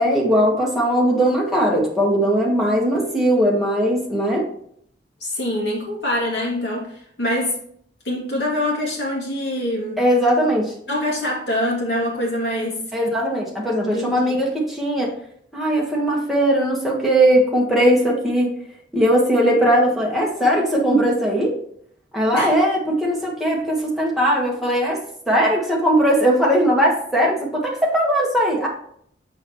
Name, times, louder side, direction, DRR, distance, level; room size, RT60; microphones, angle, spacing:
voice 1, 0.0-4.5 10.0-10.7 12.9-15.1 15.5-18.5 18.9-21.5 22.1-25.0 25.3-28.7, equal, ahead, -4 dB, 1.4 m, -19 dB
voice 2, 5.2-7.6 8.0-10.0 10.9-12.8 13.8-14.4 22.3-22.5, left 1 dB, 70° left, -3 dB, 2.6 m, -24 dB
6.9 x 5.6 x 3.1 m, 0.66 s
head